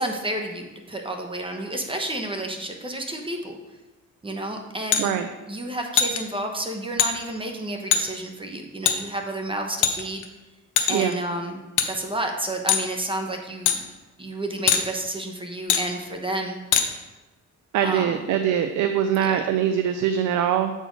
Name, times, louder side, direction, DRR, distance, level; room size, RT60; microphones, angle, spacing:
voice 1, 0.0-3.6 4.2-5.1 5.5-10.2 10.9-11.6 11.9-13.8 14.2-16.6 17.8-18.2 19.2-19.5, right 1 dB, 15° right, 3 dB, 1.1 m, -30 dB
sound 1, 4.9-5.1 6.0-6.2 7.0-7.1 7.9-8.0 8.9-9.0 9.8-10.3 10.8-11.1 11.8-11.9 12.7-12.9 13.7-13.8 14.7-14.8 15.7-15.8 16.7-16.9, left 8 dB, 80° left, 0.8 m, -20 dB
voice 2, 17.7-20.7, right 9 dB, 80° right, 7 dB, 0.5 m, -23 dB
7.7 x 4.5 x 4.6 m, 1.1 s
cardioid pair, 90°, 30 cm